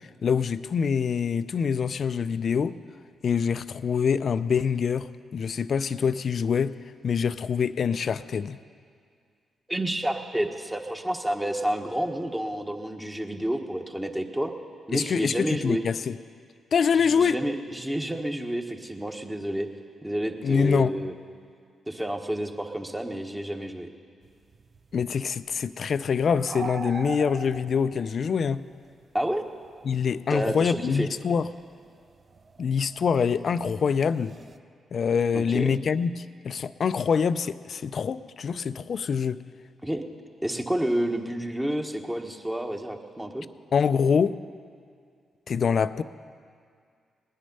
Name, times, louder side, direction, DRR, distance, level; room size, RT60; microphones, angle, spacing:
voice 1, 0.2-2.8 3.2-6.8 7.0-8.6 14.9-16.2 16.7-17.4 20.4-21.0 24.9-28.6 29.8-31.5 32.6-34.3 34.9-39.4 43.7-44.4 45.5-46.0, left 6 dB, 60° left, 15 dB, 0.4 m, -25 dB
voice 2, 9.7-14.5 14.9-15.8 16.9-19.7 20.0-21.1 21.9-23.9 29.1-29.4 30.3-31.1 35.3-35.7 39.8-40.0 40.4-43.5, right 1 dB, 15° right, 4 dB, 1.4 m, -29 dB
sound 1, 24.2-30.4 30.6-34.6, right 5 dB, 50° right, 0.6 m, -42 dB
19.0 x 10.0 x 5.5 m, 2.2 s
hypercardioid pair, 40°, 0 cm